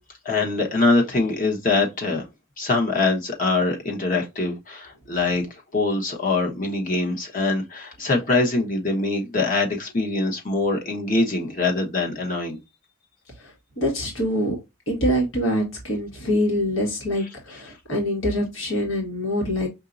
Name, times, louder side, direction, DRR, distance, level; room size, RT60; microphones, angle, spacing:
voice 1, 0.2-2.3 2.6-12.6 17.2-17.3, left 3 dB, 40° left, 1.1 m, -23 dB
voice 2, 13.8-14.5 14.9-19.7, equal, 70° left, 1.6 m, -24 dB
5.7 x 2.7 x 2.5 m
head